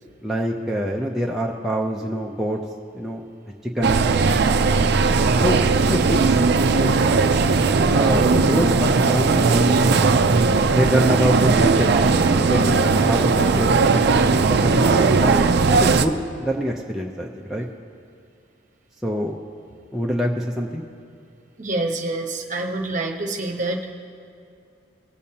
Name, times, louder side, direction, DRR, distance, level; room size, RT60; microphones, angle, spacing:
voice 1, 0.2-2.6 2.9-4.0 5.4-5.6 5.8-6.4 6.7-6.9 7.9-10.2 10.7-12.0 12.3-17.7 19.0-19.3 19.9-20.8, equal, ahead, -2 dB, 0.5 m, -25 dB
sound 1, 3.8-16.1, right 4 dB, 55° right, 0.4 m, -18 dB
voice 2, 21.6-23.9, right 2 dB, 40° right, 2 dB, 1.0 m, -27 dB
21.0 x 6.9 x 2.8 m, 2.5 s
head